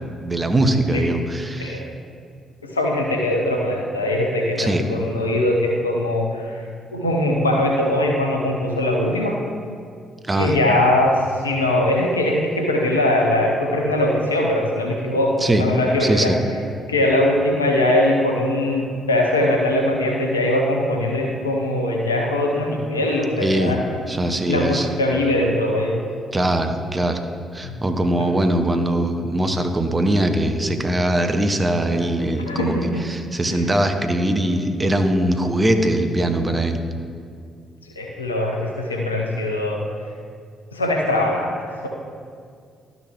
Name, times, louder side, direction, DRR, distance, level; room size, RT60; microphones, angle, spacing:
voice 1, 0.2-1.8 4.6-4.8 10.3-10.5 15.4-15.7 16.0-16.4 23.4-23.8 24.1-24.9 26.3-27.2 27.5-36.8, right 1 dB, 20° right, 6 dB, 0.9 m, -21 dB
voice 2, 2.7-6.6 6.9-9.4 10.4-16.3 16.9-23.8 24.5-26.0 27.6-27.7 28.1-28.3 32.5-33.0 33.5-33.6 38.0-39.8 40.7-41.9, left 1 dB, 85° left, 0 dB, 0.8 m, -21 dB
12.0 x 6.1 x 3.6 m, 2.2 s
figure-of-eight pair, 40°, 0 cm